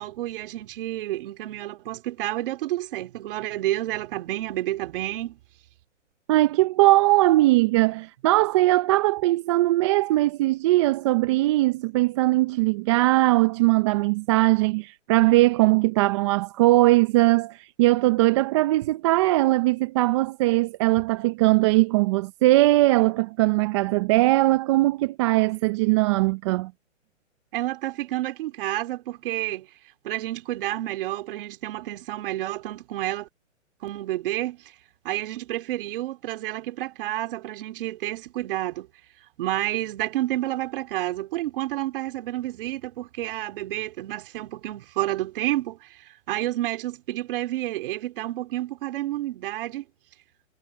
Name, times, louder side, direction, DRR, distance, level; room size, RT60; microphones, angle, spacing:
voice 1, 0.0-5.4 27.5-29.7 30.0-33.3 33.8-34.7 35.0-38.9 39.4-49.8, right 15 dB, 45° right, 3.0 m, -30 dB
voice 2, 6.3-26.7, right 19 dB, 25° right, 0.6 m, -20 dB
hypercardioid pair, 145°, 37 cm